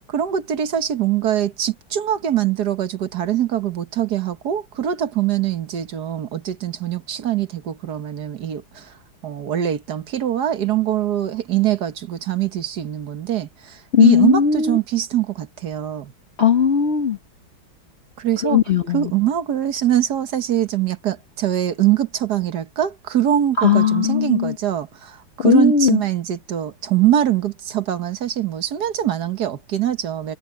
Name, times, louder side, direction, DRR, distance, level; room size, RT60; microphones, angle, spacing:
voice 1, 0.1-8.9 9.2-16.1 18.2-18.6 18.9-30.4, right 11 dB, 55° right, 1.7 m, -23 dB
voice 2, 13.9-14.8 16.4-17.2 18.4-19.1 23.6-24.5 25.4-26.0, left 7 dB, 40° left, 1.1 m, -17 dB
omnidirectional pair, 2.2 m